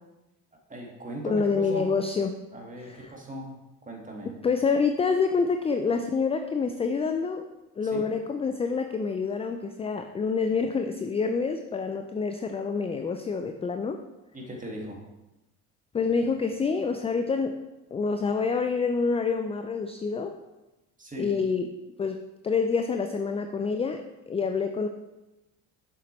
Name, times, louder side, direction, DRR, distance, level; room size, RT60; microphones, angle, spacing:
voice 1, 0.5-1.9 2.5-3.6 3.9-4.3 7.8-8.1 14.3-15.0 21.0-21.3, right 1 dB, 20° right, -1 dB, 2.1 m, -38 dB
voice 2, 1.2-2.4 4.4-7.4 7.8-14.0 15.9-17.6 17.9-20.3 21.2-21.7 22.0-24.9, left 5 dB, 15° left, 6 dB, 0.3 m, -27 dB
7.1 x 6.7 x 3.1 m, 1.0 s
hypercardioid pair, 65°, 43 cm